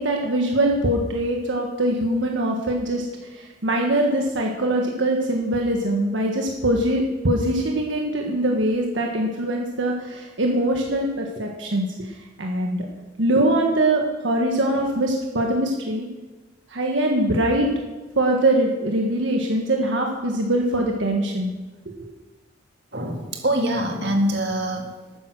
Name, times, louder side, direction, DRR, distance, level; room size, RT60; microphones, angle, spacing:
voice 1, 0.0-12.1 12.4-12.9 13.2-16.1 16.7-17.7 18.1-21.5 21.8-22.1, right 1 dB, 80° right, 1 dB, 1.5 m, -22 dB
voice 2, 22.9-25.2, right 1 dB, 65° right, 3 dB, 1.9 m, -24 dB
12.5 x 9.5 x 6.2 m, 1.2 s
head